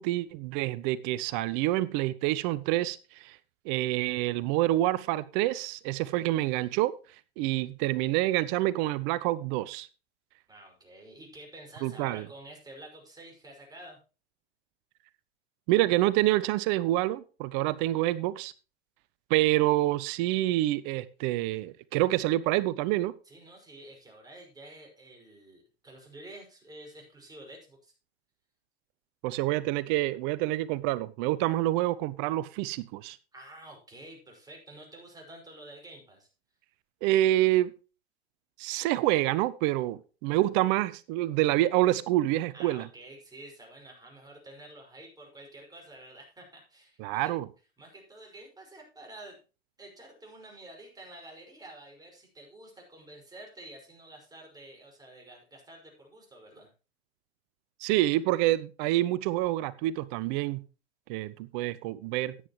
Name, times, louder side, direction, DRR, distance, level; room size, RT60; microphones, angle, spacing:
voice 1, 0.0-3.4 3.6-6.9 7.4-9.9 11.8-12.3 15.7-18.5 19.3-23.1 29.2-33.2 37.0-37.7 38.6-42.9 47.0-47.5 57.8-60.6 61.1-62.3, right 16 dB, 50° right, 0.7 m, -27 dB
voice 2, 10.5-14.0 23.3-27.9 33.3-36.3 42.5-47.3 47.8-49.4 49.8-56.7, right 1 dB, 10° right, 5.5 m, -49 dB
13.5 x 9.6 x 3.1 m
hypercardioid pair, 100°, 32 cm